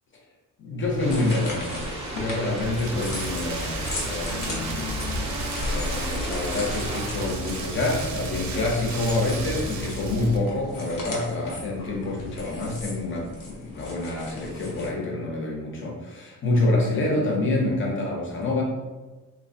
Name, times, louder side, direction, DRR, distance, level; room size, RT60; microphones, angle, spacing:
voice 1, 0.6-1.8 2.1-5.3 5.7-18.6, left 2 dB, 40° left, -1 dB, 0.6 m, -27 dB
sound 1, 0.8-14.9, left 1 dB, 85° left, 0.8 m, -37 dB
sound 2, 1.0-7.3, equal, 20° right, 0.6 m, -35 dB
Rain, 2.6-10.4, right 2 dB, 60° right, 0.5 m, -33 dB
3.0 x 2.2 x 2.5 m, 1.2 s
wide cardioid pair, 150°, 32 cm